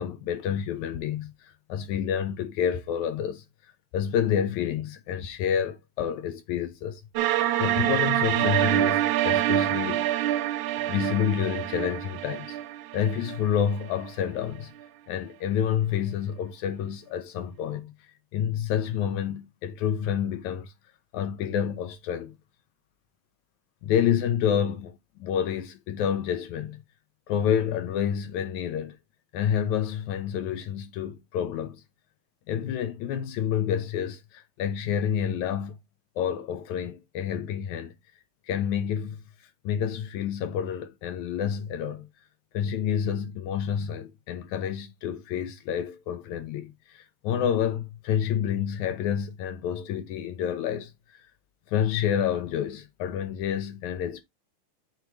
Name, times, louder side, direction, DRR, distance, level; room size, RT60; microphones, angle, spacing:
voice 1, 0.0-3.4 3.9-7.0 7.6-10.2 10.8-12.6 12.9-14.7 15.1-17.9 18.3-20.7 21.1-22.4 23.8-26.8 27.3-29.0 29.3-31.8 32.5-35.8 36.2-37.9 38.5-39.2 39.7-42.1 42.5-50.9 51.7-54.2, left 8 dB, 75° left, 1.8 m, -28 dB
sound 1, 7.2-14.1, right 13 dB, 85° right, 1.7 m, -26 dB
8.2 x 3.0 x 4.7 m
omnidirectional pair, 4.0 m